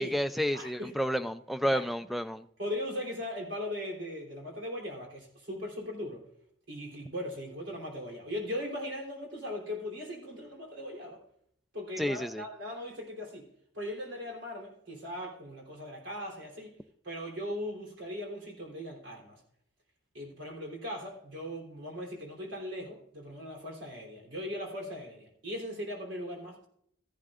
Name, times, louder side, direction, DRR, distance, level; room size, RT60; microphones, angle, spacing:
voice 1, 0.0-2.4 12.0-12.4, equal, ahead, 10 dB, 0.3 m, -30 dB
voice 2, 0.5-1.0 1.6-1.9 2.6-6.2 6.7-11.2 11.7-13.5 13.7-16.8 17.0-19.4 20.1-26.7, left 1 dB, 65° right, 0 dB, 3.5 m, -39 dB
14.0 x 11.0 x 2.5 m, 0.68 s
head